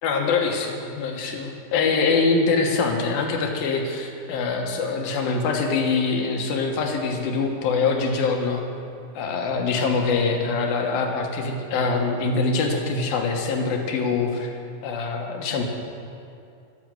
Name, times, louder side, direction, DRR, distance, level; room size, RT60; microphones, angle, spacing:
voice 1, 0.0-8.6 9.1-14.5 14.8-15.6, left 4 dB, 85° left, 2 dB, 3.2 m, -24 dB
12.5 x 11.5 x 7.7 m, 2.6 s
omnidirectional pair, 4.0 m